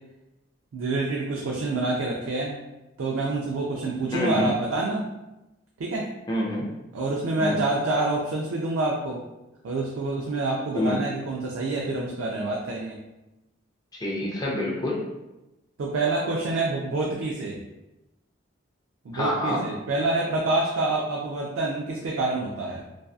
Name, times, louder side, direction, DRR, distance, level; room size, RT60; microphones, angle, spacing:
voice 1, 0.7-2.6 3.0-5.0 5.8-6.1 6.9-9.2 9.6-13.0 15.8-17.6 19.0-22.8, right 2 dB, 90° right, -2 dB, 0.4 m, -27 dB
voice 2, 4.1-4.5 6.3-6.7 7.4-7.6 10.7-11.0 14.0-15.0 19.1-19.6, left 1 dB, 20° left, -4 dB, 0.3 m, -26 dB
2.6 x 2.3 x 2.3 m, 0.98 s
head